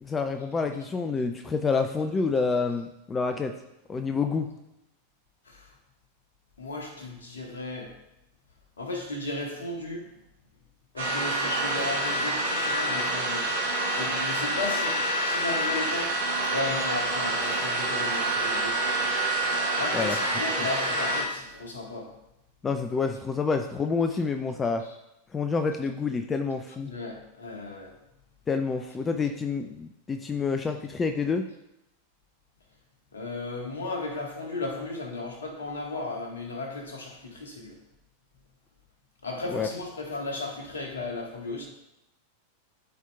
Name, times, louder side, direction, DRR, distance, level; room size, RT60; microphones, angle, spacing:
voice 1, 0.0-3.6 3.9-4.5 19.9-20.2 22.6-24.9 25.3-26.9 28.5-31.5 39.5-39.7, left 4 dB, 20° left, 6 dB, 0.4 m, -28 dB
voice 2, 6.6-7.9 8.8-10.1 10.9-16.1 16.4-19.1 19.7-22.1 26.8-27.9 33.1-37.8 39.2-41.7, left 2 dB, 70° left, 2 dB, 1.4 m, -35 dB
sound 1, 11.0-21.2, right 2 dB, 75° right, 1.8 m, -27 dB
13.0 x 4.5 x 2.3 m, 0.89 s
figure-of-eight pair, 90°, 0 cm